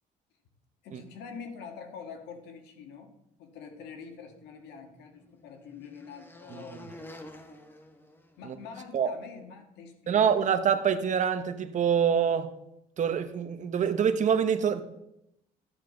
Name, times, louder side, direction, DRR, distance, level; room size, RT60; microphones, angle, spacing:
voice 1, 0.8-3.1 3.4-6.9 8.4-10.4, left 6 dB, 85° left, 1.7 m, -45 dB
sound 1, 4.2-8.8, left 1 dB, 10° left, 1.2 m, -50 dB
voice 2, 10.1-12.5 13.0-14.8, right 7 dB, 45° right, 1.0 m, -25 dB
13.0 x 8.9 x 3.9 m
cardioid pair, 110°, 17 cm